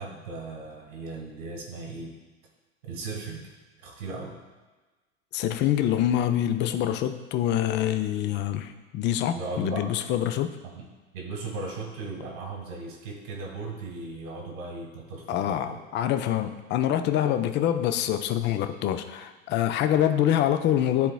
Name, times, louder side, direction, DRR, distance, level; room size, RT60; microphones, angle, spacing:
voice 1, 0.0-2.2 2.8-3.5 3.8-4.4 9.3-9.8 10.7-10.9 11.1-15.8, right 3 dB, 70° right, 0 dB, 1.9 m, -37 dB
voice 2, 5.3-10.6 15.3-21.1, left 11 dB, 30° left, 9 dB, 0.4 m, -25 dB
11.5 x 3.9 x 2.3 m, 1.3 s
hypercardioid pair, 90°, 41 cm